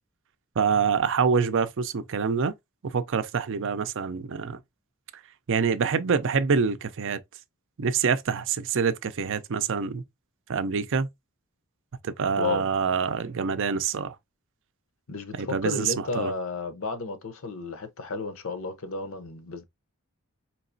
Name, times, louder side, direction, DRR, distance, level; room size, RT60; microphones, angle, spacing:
voice 1, 0.6-2.5 2.8-4.6 5.5-7.2 7.8-10.0 10.5-11.1 12.0-14.1 15.3-16.3, right 5 dB, 60° right, 0.5 m, -26 dB
voice 2, 12.4-12.7 15.1-19.6, left 4 dB, 65° left, 0.8 m, -32 dB
4.6 x 3.0 x 2.6 m
head